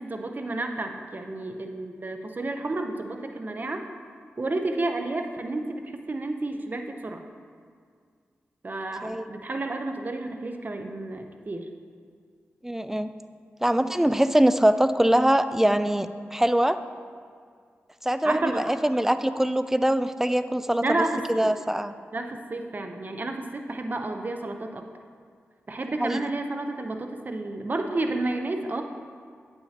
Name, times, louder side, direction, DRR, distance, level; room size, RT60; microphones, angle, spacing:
voice 1, 0.0-3.8 4.4-7.2 8.6-11.7 18.2-18.7 20.8-21.5 22.1-24.8 25.7-28.8, right 2 dB, 40° right, 5 dB, 0.7 m, -31 dB
voice 2, 12.6-13.1 13.6-16.8 18.0-21.9 26.0-26.2, right 1 dB, 10° right, 11 dB, 0.4 m, -23 dB
8.9 x 8.5 x 2.9 m, 2.1 s
cardioid pair, 50°, 5 cm